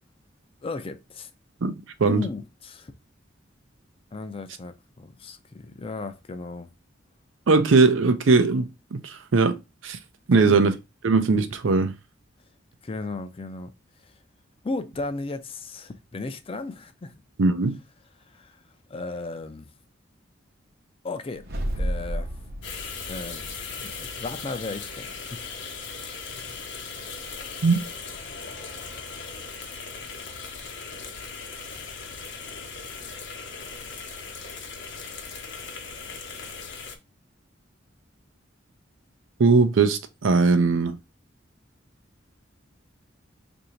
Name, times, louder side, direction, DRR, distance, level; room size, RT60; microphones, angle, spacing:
voice 1, 0.6-1.3 2.0-2.9 4.1-6.7 10.3-10.6 12.8-13.7 14.0-14.1 14.6-17.1 18.3-18.6 18.9-19.7 21.0-21.5 21.7-22.3 23.1-23.5 23.8-25.4, left 3 dB, 30° left, 0.4 m, -35 dB
voice 2, 1.6-2.3 7.5-9.6 9.8-10.0 10.3-10.7 11.0-11.9 17.4-17.8 27.6-27.8 39.4-41.0, right 4 dB, 85° right, 0.5 m, -20 dB
sound 1, 21.4-25.7, equal, 55° right, 0.7 m, -34 dB
sound 2, 22.6-37.0, left 5 dB, 65° left, 0.8 m, -38 dB
2.8 x 2.6 x 4.3 m
head